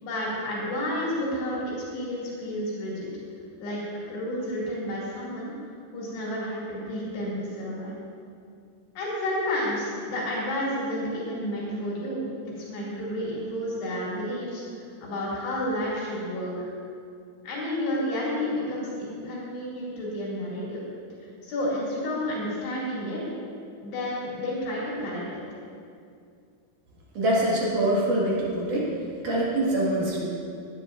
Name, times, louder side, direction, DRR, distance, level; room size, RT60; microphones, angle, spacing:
voice 1, 0.0-3.1 3.6-3.8 4.1-5.5 5.9-8.0 9.0-12.3 12.5-16.7 17.4-20.8 21.2-23.3 23.8-25.4, left 1 dB, 85° left, -6 dB, 4.5 m, -31 dB
voice 2, 27.1-28.9 29.2-30.2, right 1 dB, 55° right, -5 dB, 3.0 m, -24 dB
18.0 x 10.0 x 2.5 m, 2.4 s
omnidirectional pair, 4.6 m